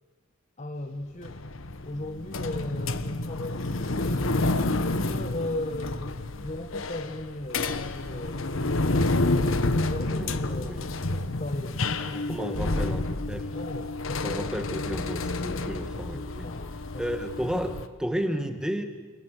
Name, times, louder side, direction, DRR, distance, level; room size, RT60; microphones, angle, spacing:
voice 1, 0.6-4.4 4.8-8.6 9.4-10.8 11.1-12.6 13.5-14.5 15.3-15.8 16.1-17.0, left 1 dB, 35° left, 5 dB, 1.4 m, -37 dB
sound 1, 1.2-17.9, left 2 dB, 70° left, 1.3 m, -29 dB
voice 2, 10.1-10.9 12.1-13.6 14.2-16.5 17.0-18.8, equal, 5° right, 6 dB, 2.2 m, -33 dB
30.0 x 27.0 x 6.7 m, 1.3 s
head